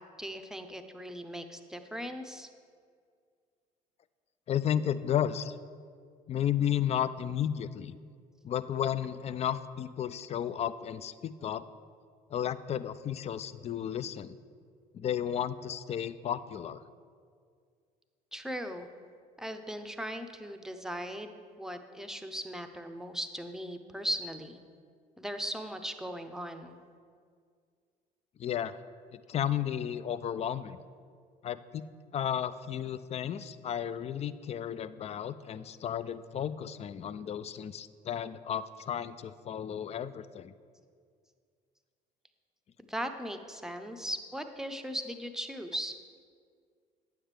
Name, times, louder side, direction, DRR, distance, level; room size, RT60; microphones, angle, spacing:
voice 1, 0.2-2.5 18.3-18.9 19.4-21.3 21.6-24.6 25.2-26.8 42.9-45.9, equal, ahead, 7 dB, 0.7 m, -38 dB
voice 2, 4.5-5.5 6.3-8.0 8.4-11.6 12.3-14.3 14.9-16.8 28.4-28.8 29.1-30.8 31.4-31.8 32.1-40.5, left 9 dB, 30° left, 15 dB, 0.4 m, -33 dB
9.3 x 7.2 x 3.4 m, 2.1 s
hypercardioid pair, 60°, 21 cm